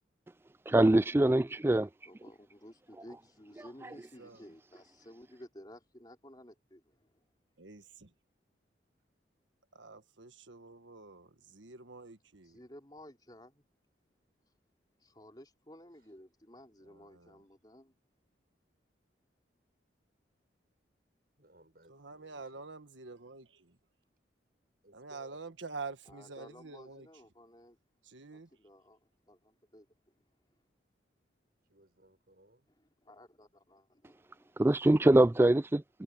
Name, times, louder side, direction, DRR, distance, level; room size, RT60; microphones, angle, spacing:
voice 1, 0.7-1.9 34.6-36.0, right 1 dB, 10° right, 0.3 m, -24 dB
voice 2, 2.0-7.3 12.4-13.6 14.4-14.5 15.0-17.9 26.1-27.8 28.3-30.1 30.5-30.6 32.8-34.1, left 1 dB, 25° left, 3.4 m, -55 dB
voice 3, 3.8-4.5 7.6-8.1 9.7-12.6 16.8-17.4 21.9-23.8 24.9-27.1 28.0-28.6, right 4 dB, 80° right, 1.6 m, -47 dB
voice 4, 21.4-22.7 24.8-25.5 31.6-32.7, right 1 dB, 50° right, 7.3 m, -62 dB
head